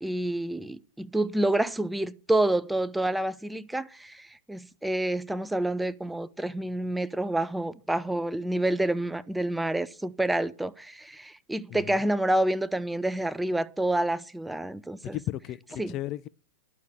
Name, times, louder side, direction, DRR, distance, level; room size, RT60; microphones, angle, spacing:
voice 1, 0.0-15.2 15.8-15.9, right 1 dB, 5° right, 0.6 m, -28 dB
voice 2, 15.0-16.3, left 14 dB, 40° left, 0.4 m, -34 dB
11.5 x 6.3 x 6.9 m
hypercardioid pair, 110°, 0 cm